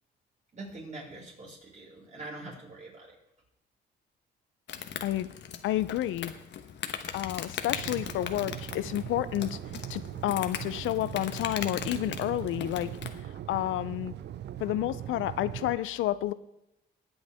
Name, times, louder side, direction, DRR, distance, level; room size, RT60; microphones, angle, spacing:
voice 1, 0.5-3.2, right 2 dB, 40° right, -3 dB, 5.6 m, -44 dB
Insect, 4.7-13.2, left 8 dB, 65° left, 1.2 m, -39 dB
voice 2, 5.6-6.3 7.1-9.6 9.9-12.9 13.5-14.1 14.6-16.3, left 14 dB, 80° left, 15 dB, 0.5 m, -30 dB
sound 1, 7.7-15.8, right 11 dB, 60° right, 0.5 m, -40 dB
20.0 x 7.9 x 3.5 m, 0.88 s
cardioid pair, 90°, 20 cm